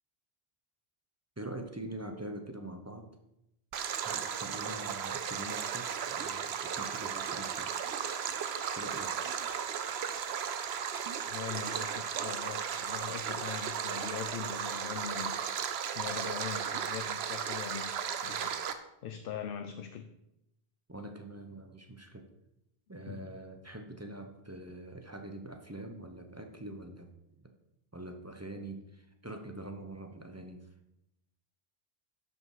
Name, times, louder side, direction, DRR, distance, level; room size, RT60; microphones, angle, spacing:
voice 1, 1.4-3.1 4.0-7.7 8.7-9.1 20.9-22.3 22.9-27.5 27.9-30.6, right 1 dB, 15° right, 0.8 m, -44 dB
Stream, 3.7-18.7, right 7 dB, 90° right, 0.9 m, -35 dB
voice 2, 11.3-15.4 15.9-18.6 19.0-20.1 23.1-23.2, left 8 dB, 65° left, 0.8 m, -41 dB
11.5 x 5.2 x 4.8 m
omnidirectional pair, 1.0 m